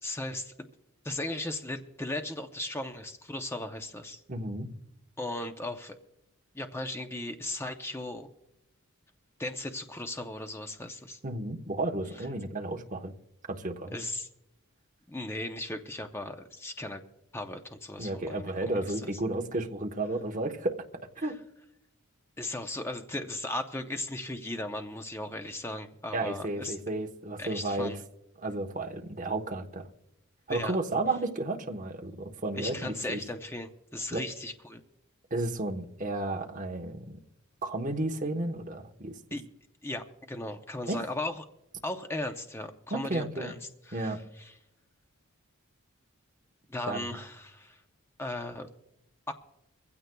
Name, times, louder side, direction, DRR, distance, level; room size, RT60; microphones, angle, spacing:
voice 1, 0.0-0.7 1.0-4.2 5.2-6.0 6.5-8.3 9.4-11.2 13.9-14.3 15.1-17.0 17.3-18.5 18.8-19.1 21.2-21.3 22.4-26.8 27.4-28.0 30.5-30.8 32.6-34.8 39.3-39.4 39.8-41.5 41.8-43.6 43.9-44.5 46.7-47.8 48.2-48.7 49.3-49.4, left 1 dB, 10° left, 6 dB, 0.6 m, -37 dB
voice 2, 4.3-4.7 11.2-13.1 13.5-14.0 18.0-20.8 21.2-21.3 26.1-27.9 28.4-29.9 30.5-33.2 34.1-34.2 35.3-37.2 37.6-39.1 40.9-41.0 42.9-43.5 43.9-44.2 46.8-47.1, right 2 dB, 35° right, 2 dB, 1.1 m, -32 dB
23.5 x 15.5 x 2.3 m, 0.88 s
head